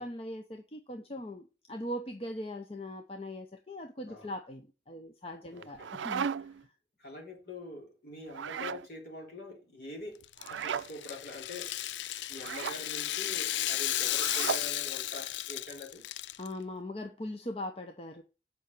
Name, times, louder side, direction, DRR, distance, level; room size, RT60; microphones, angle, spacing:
voice 1, 0.0-6.7 16.4-18.2, left 1 dB, 30° left, 0.8 m, -40 dB
voice 2, 5.5-5.9 7.0-10.2 10.5-11.7 12.3-16.0, left 2 dB, 55° left, 3.9 m, -44 dB
sound 1, 5.6-6.6 8.3-8.9 10.4-10.9 12.4-12.8 14.1-14.7, right 7 dB, 90° right, 0.4 m, -35 dB
Rattle (instrument), 10.2-16.5, left 14 dB, 80° left, 0.4 m, -34 dB
8.0 x 5.4 x 6.6 m
head